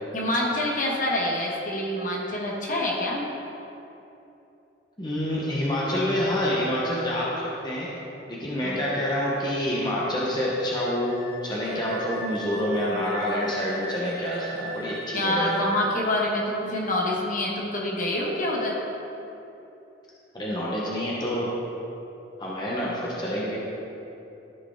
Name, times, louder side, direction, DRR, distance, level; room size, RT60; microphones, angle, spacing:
voice 1, 0.1-3.3 8.6-8.9 15.1-18.8, left 1 dB, 45° left, -3 dB, 1.2 m, -26 dB
voice 2, 5.0-7.9 8.3-15.6 20.3-21.5 22.4-23.6, equal, 25° left, -6 dB, 1.0 m, -27 dB
Wind instrument woodwind instrument, 11.1-15.8, right 1 dB, 80° left, 1.8 m, -39 dB
13.5 x 4.6 x 3.7 m, 2.9 s
head